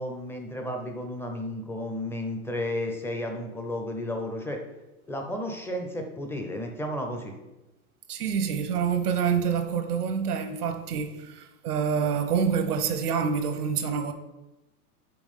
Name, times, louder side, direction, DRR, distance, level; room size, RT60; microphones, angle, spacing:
voice 1, 0.0-4.6 5.1-7.3, left 1 dB, 5° left, 0.5 m, -33 dB
voice 2, 8.1-14.1, right 7 dB, 80° right, 1.1 m, -27 dB
5.3 x 4.5 x 5.6 m
hypercardioid pair, 125°, 45 cm